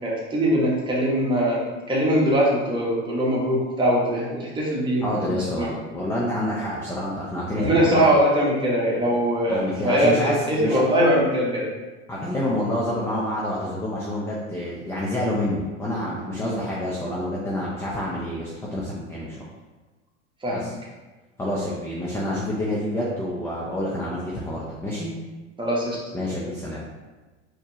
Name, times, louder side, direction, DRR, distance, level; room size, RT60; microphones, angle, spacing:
voice 1, 0.0-5.7 7.5-11.7 20.4-20.7 25.6-26.0, equal, 10° right, -5 dB, 1.3 m, -22 dB
voice 2, 5.0-8.1 9.5-10.8 12.1-19.4 20.5-20.7 21.4-25.1 26.1-26.9, left 1 dB, 5° left, -5 dB, 0.5 m, -28 dB
4.2 x 3.2 x 2.9 m, 1.2 s
hypercardioid pair, 100°, 38 cm